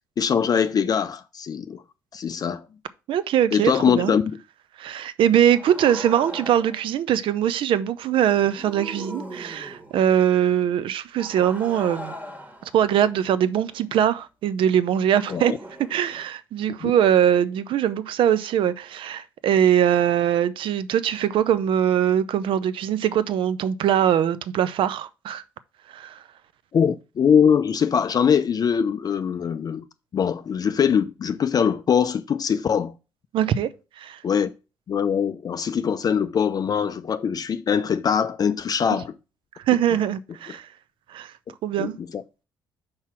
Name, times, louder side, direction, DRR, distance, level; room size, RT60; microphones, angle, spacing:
voice 1, 0.2-1.8 2.1-2.7 3.5-4.2 15.3-15.6 16.8-16.9 26.7-29.8 30.1-32.9 34.2-34.5 34.9-39.1 41.8-42.2, left 7 dB, 35° left, 0.5 m, -22 dB
voice 2, 3.1-4.1 4.8-12.1 12.6-15.5 15.9-25.4 25.9-26.2 33.3-33.7 34.0-34.2 39.7-40.7 41.1-41.3 41.6-41.9, right 10 dB, 55° right, 0.6 m, -22 dB
sound 1, 5.5-6.9 8.3-10.1 11.2-13.8 15.2-16.2, right 1 dB, 15° right, 1.6 m, -39 dB
5.6 x 4.8 x 5.9 m
figure-of-eight pair, 45°, 11 cm